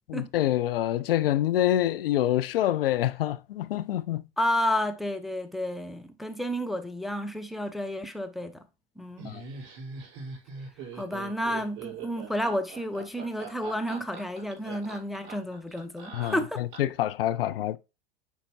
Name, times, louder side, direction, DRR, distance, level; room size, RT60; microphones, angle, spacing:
voice 1, 0.1-4.2 9.2-9.4 16.1-17.8, left 13 dB, 60° left, 0.6 m, -26 dB
voice 2, 4.4-8.6 9.0-9.4 10.9-16.6, equal, ahead, 0.6 m, -31 dB
Laughter, 9.2-17.0, right 5 dB, 40° right, 3.7 m, -42 dB
9.2 x 4.4 x 2.7 m
figure-of-eight pair, 95°, 32 cm